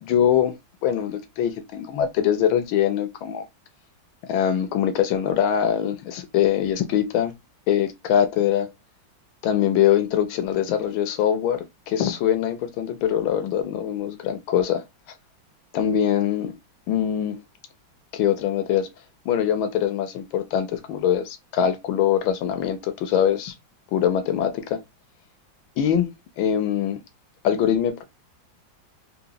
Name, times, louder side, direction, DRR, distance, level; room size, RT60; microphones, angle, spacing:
voice 1, 0.0-3.5 4.2-7.3 7.7-8.7 9.4-14.8 15.7-16.6 16.9-17.4 18.1-18.9 19.2-23.5 23.9-24.8 25.8-27.0 27.4-28.0, left 9 dB, 80° left, 1.4 m, -23 dB
3.9 x 2.9 x 2.2 m
omnidirectional pair, 2.1 m